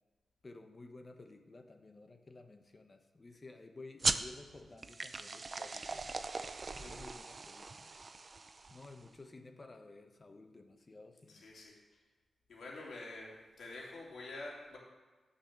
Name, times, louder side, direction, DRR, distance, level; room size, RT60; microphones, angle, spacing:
voice 1, 0.4-6.1 6.8-7.9 8.7-11.5, left 2 dB, 30° left, 6 dB, 1.0 m, -54 dB
sound 1, 4.0-9.1, right 3 dB, 40° right, 0.5 m, -39 dB
voice 2, 6.8-7.1 11.3-11.7 12.5-14.8, left 2 dB, 75° left, -3 dB, 2.9 m, -47 dB
10.0 x 5.7 x 7.4 m, 1.3 s
cardioid pair, 90°, 0 cm